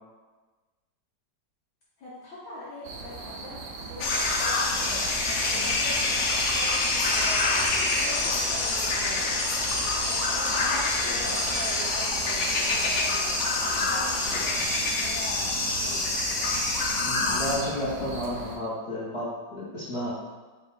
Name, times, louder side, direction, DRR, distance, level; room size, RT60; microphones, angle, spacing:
voice 1, 2.0-5.1 5.5-9.4 10.0-16.1, left 1 dB, 70° left, -7 dB, 1.2 m, -42 dB
sound 1, 2.8-18.6, right 3 dB, 75° right, 0.9 m, -39 dB
sound 2, 4.0-17.6, left 3 dB, 90° left, 1.3 m, -26 dB
voice 2, 17.0-20.1, left 1 dB, 50° left, -10 dB, 0.8 m, -32 dB
4.2 x 2.2 x 3.7 m, 1.3 s
omnidirectional pair, 2.0 m